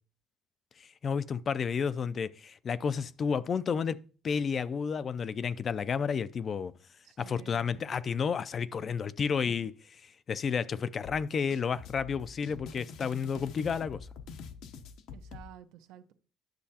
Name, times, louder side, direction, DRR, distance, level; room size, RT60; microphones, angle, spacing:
voice 1, 0.8-6.7 7.2-14.1, left 6 dB, 35° left, 0.4 m, -31 dB
voice 2, 7.0-7.9 15.1-16.1, right 10 dB, 85° right, 0.9 m, -52 dB
sound 1, 11.0-15.4, left 5 dB, 70° left, 0.8 m, -46 dB
10.5 x 6.3 x 2.8 m
cardioid pair, 120°, 0 cm